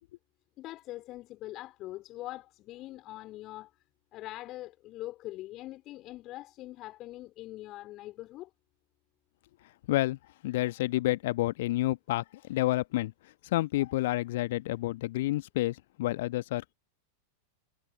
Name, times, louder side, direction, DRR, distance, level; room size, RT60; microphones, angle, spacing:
voice 1, 0.6-3.7 4.1-8.5, left 16 dB, 35° left, 4.3 m, -43 dB
voice 2, 9.9-16.7, left 17 dB, 55° left, 1.4 m, -30 dB
figure-of-eight pair, 90°, 0 cm